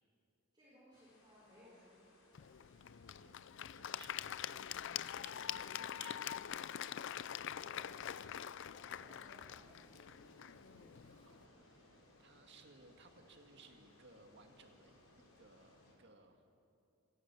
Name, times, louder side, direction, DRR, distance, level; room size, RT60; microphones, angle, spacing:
voice 1, 0.5-2.1 7.5-9.8, equal, 20° right, -7 dB, 4.9 m, -63 dB
sound 1, 0.9-15.9, left 1 dB, 75° left, 5.1 m, -66 dB
Applause / Crowd, 2.3-11.4, left 10 dB, 60° left, 0.4 m, -45 dB
voice 2, 3.2-6.6 10.7-16.5, right 4 dB, 55° right, 4 dB, 2.0 m, -63 dB
sound 2, 4.7-11.2, left 1 dB, 15° left, 6.3 m, -74 dB
26.5 x 17.5 x 6.2 m, 2.5 s
head